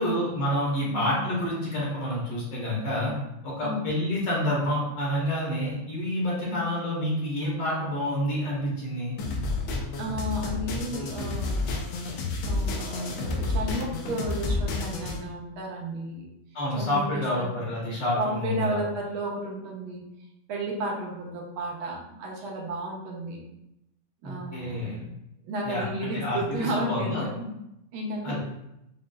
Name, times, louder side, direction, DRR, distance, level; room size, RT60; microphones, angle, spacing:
voice 1, 0.0-3.1 3.4-9.1 16.5-18.8 24.2-25.0 25.6-27.2 28.2-28.4, left 1 dB, 60° left, -5 dB, 1.8 m, -28 dB
sound 1, 9.2-15.2, left 3 dB, 80° left, 1.4 m, -30 dB
voice 2, 10.0-11.6 12.4-16.3 16.8-17.5 18.2-20.0 20.5-23.4 24.2-25.1 25.5-27.5 27.9-28.4, right 1 dB, 80° right, -1 dB, 1.6 m, -33 dB
5.1 x 2.7 x 2.3 m, 0.85 s
omnidirectional pair, 2.3 m